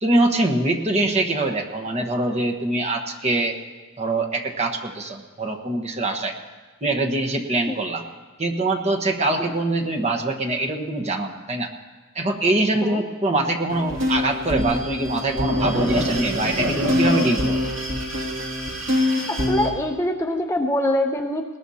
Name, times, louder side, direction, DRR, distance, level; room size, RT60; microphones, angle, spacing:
voice 1, 0.0-3.6 4.0-6.3 6.8-8.0 8.4-11.7 12.1-17.6, right 2 dB, 30° right, 2 dB, 1.2 m, -23 dB
sound 1, 13.7-19.7, left 1 dB, 65° right, 2.5 m, -24 dB
voice 2, 19.3-21.6, left 1 dB, 15° left, 3 dB, 0.6 m, -24 dB
20.0 x 19.5 x 2.8 m, 1.3 s
head